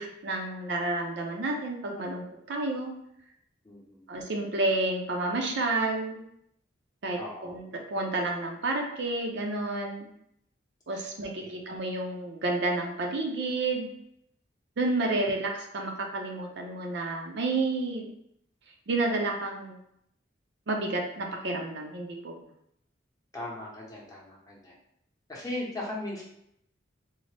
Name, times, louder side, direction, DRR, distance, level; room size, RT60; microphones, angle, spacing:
voice 1, 0.0-2.9 4.1-6.2 7.0-7.6 7.9-10.1 10.9-13.9 14.8-18.1 18.9-19.8 20.7-22.4, right 2 dB, 60° right, 2 dB, 0.5 m, -30 dB
voice 2, 3.6-4.1 7.2-7.6 10.9-11.1 11.4-11.6 23.3-24.7 25.3-26.2, left 1 dB, 20° left, -4 dB, 0.7 m, -38 dB
3.9 x 2.0 x 3.2 m, 0.75 s
head